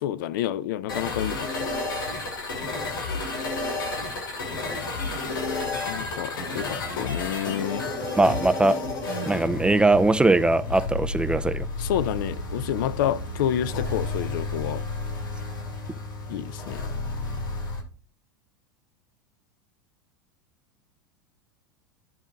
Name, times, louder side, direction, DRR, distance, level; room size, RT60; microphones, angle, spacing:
voice 1, 0.0-1.7 5.8-7.8 11.8-14.8 16.3-16.8, left 11 dB, 70° left, 0.5 m, -29 dB
sound 1, 0.9-17.8, left 3 dB, 90° left, 5.2 m, -31 dB
voice 2, 8.2-8.8 9.2-11.7, right 2 dB, 10° right, 0.3 m, -21 dB
10.5 x 3.9 x 5.1 m
hypercardioid pair, 110°, 11 cm